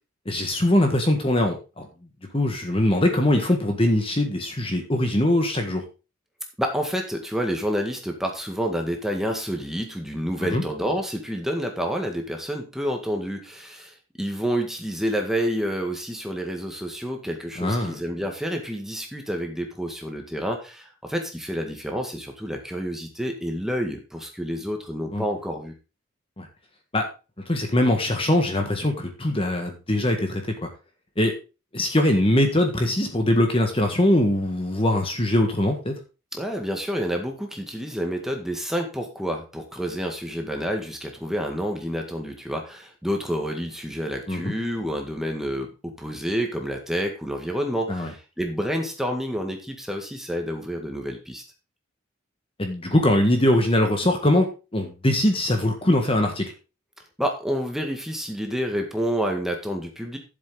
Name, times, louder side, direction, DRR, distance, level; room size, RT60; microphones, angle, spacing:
voice 1, 0.2-1.9 2.3-5.8 10.4-10.6 17.6-18.0 25.1-25.2 26.4-26.5 26.9-27.1 27.5-30.7 31.2-31.3 31.7-36.0 44.3-44.5 47.9-48.1 52.6-56.5, left 1 dB, 25° left, 4 dB, 1.6 m, -22 dB
voice 2, 6.6-25.7 36.3-51.4 57.2-60.2, equal, ahead, 2 dB, 1.8 m, -29 dB
12.0 x 7.6 x 3.9 m, 0.31 s
head